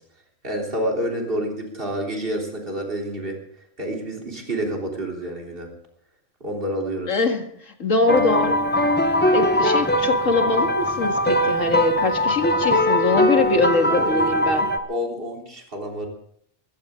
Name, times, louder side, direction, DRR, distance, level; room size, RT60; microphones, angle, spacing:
voice 1, 0.4-3.4 3.8-5.7 6.4-7.1 13.8-14.3 14.9-16.1, right 1 dB, 40° right, 0 dB, 3.7 m, -28 dB
voice 2, 7.1-8.7 9.3-14.7, left 3 dB, 70° left, 4 dB, 2.3 m, -23 dB
sound 1, 8.1-14.8, equal, 10° left, 0.9 m, -21 dB
21.5 x 15.5 x 3.8 m, 0.67 s
omnidirectional pair, 1.4 m